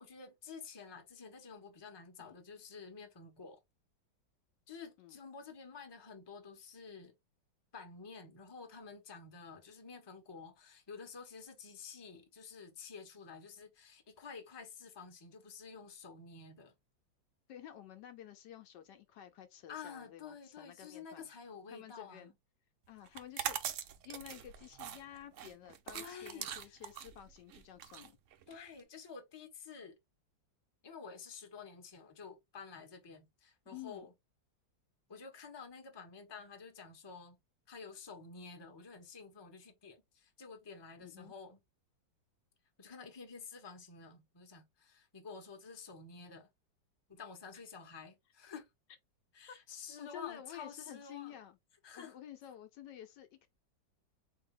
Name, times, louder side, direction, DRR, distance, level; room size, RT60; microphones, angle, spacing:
voice 1, 0.0-3.6 4.7-7.1 7.7-16.7 19.7-22.3 25.9-26.8 28.5-30.0 30.8-34.1 35.1-37.4 37.7-41.6 42.8-46.5 47.1-48.7 49.3-51.3 51.8-52.1, left 5 dB, 20° left, 0.7 m, -50 dB
voice 2, 17.5-21.3 21.7-22.3 22.9-23.6 24.0-28.2 33.7-34.1 41.0-41.3 49.5-49.6 50.0-51.6 51.9-53.5, left 11 dB, 70° left, 1.2 m, -51 dB
sound 1, 23.1-28.8, right 9 dB, 85° right, 0.6 m, -42 dB
4.0 x 2.7 x 3.6 m
omnidirectional pair, 2.1 m